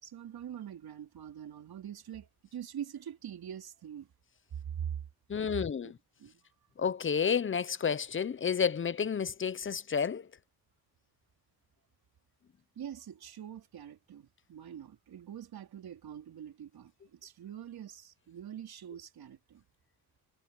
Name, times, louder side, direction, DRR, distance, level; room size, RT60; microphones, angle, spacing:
voice 1, 0.0-4.1 4.7-5.0 5.8-5.9 6.2-6.5 12.8-19.7, right 9 dB, 75° right, 3.7 m, -44 dB
voice 2, 5.3-6.0 6.8-10.3, left 7 dB, 35° left, 0.7 m, -30 dB
cardioid pair, 95°, 37 cm